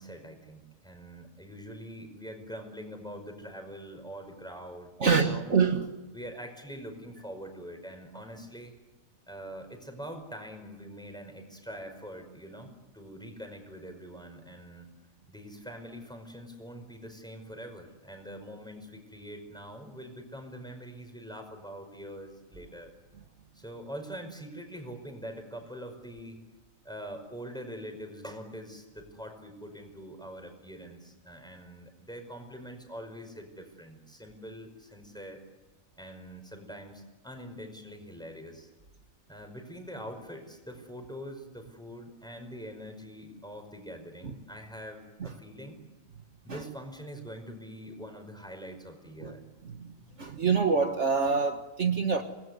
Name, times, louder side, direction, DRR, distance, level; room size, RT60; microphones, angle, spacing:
voice 1, 0.0-5.5 6.1-8.7 9.3-14.9 15.3-22.9 23.5-26.4 26.8-35.4 36.0-38.7 39.3-45.8 46.4-49.4, equal, 5° left, 5 dB, 5.3 m, -44 dB
voice 2, 5.0-5.9 44.2-44.3 45.2-45.3 46.5-46.6 49.2-49.3 49.6-49.8 50.2-52.2, right 5 dB, 60° right, 5 dB, 1.8 m, -26 dB
27.5 x 20.5 x 9.5 m, 1.1 s
omnidirectional pair, 1.4 m